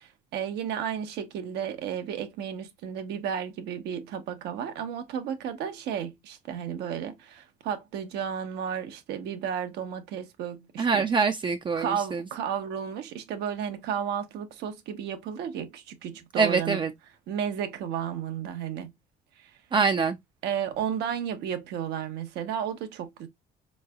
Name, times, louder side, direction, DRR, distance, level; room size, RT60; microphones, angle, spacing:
voice 1, 0.0-11.0 11.8-16.8 17.3-18.9 19.4-19.5 20.4-23.3, right 8 dB, 80° right, 0.8 m, -33 dB
voice 2, 10.8-12.2 16.4-16.9 19.7-20.2, right 5 dB, 30° right, 0.4 m, -24 dB
4.1 x 3.1 x 2.2 m
cardioid pair, 110°, 17 cm